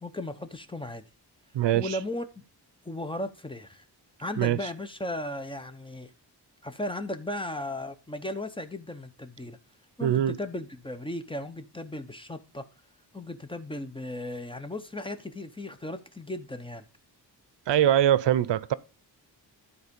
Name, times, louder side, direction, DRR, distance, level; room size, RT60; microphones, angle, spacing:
voice 1, 0.0-1.0 1.7-2.4 2.8-3.8 4.2-6.1 6.6-9.6 10.0-12.6 13.1-16.8, left 1 dB, 10° left, 0.8 m, -36 dB
voice 2, 1.5-2.0 4.4-4.6 10.0-10.4 17.7-18.7, right 11 dB, 80° right, 0.6 m, -23 dB
12.5 x 4.1 x 5.2 m
wide cardioid pair, 150°, 42 cm